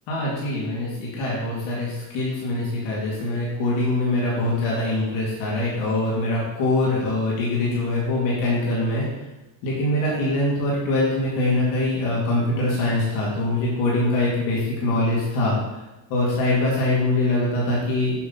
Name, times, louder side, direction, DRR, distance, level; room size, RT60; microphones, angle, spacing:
voice 1, 0.1-9.0 9.6-15.8 16.1-18.1, left 2 dB, 90° left, -6 dB, 2.5 m, -23 dB
8.5 x 5.5 x 4.0 m, 0.99 s
supercardioid pair, 75°, 49 cm